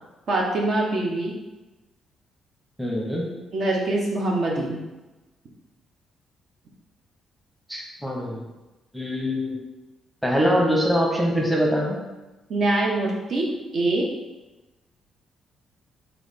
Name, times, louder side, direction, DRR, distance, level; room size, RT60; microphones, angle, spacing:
voice 1, 0.3-1.3 3.5-4.8 12.5-13.5 13.7-14.0, right 2 dB, 60° right, -2 dB, 0.9 m, -23 dB
voice 2, 2.8-3.3 7.7-8.4 8.9-9.6 10.2-12.0, equal, 5° right, -2 dB, 0.9 m, -23 dB
3.4 x 3.3 x 4.1 m, 1.1 s
cardioid pair, 90°, 0 cm